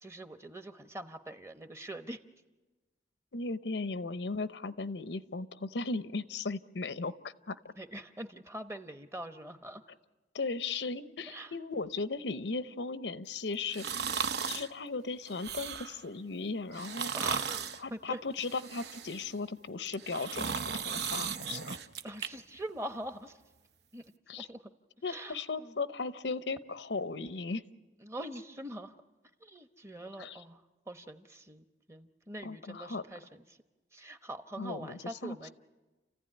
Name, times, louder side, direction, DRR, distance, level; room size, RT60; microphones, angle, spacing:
voice 1, 0.0-2.2 7.8-9.8 11.3-11.5 17.1-18.2 22.0-23.4 23.9-24.0 24.3-24.6 25.1-25.7 28.0-28.9 29.4-30.6 30.9-33.4 33.9-35.5, right 1 dB, 15° right, 9 dB, 1.0 m, -43 dB
voice 2, 3.3-7.1 7.5-7.6 10.3-13.9 14.4-17.1 17.8-21.8 24.3-24.5 25.0-27.6 30.2-30.4 32.4-33.0 34.6-35.5, left 3 dB, 85° left, 13 dB, 0.8 m, -37 dB
sound 1, 13.7-14.7 15.3-16.0 16.7-17.8 18.4-19.3 19.9-22.3 22.7-22.8, right 6 dB, 70° right, 0.9 m, -36 dB
30.0 x 15.5 x 9.9 m, 1.2 s
head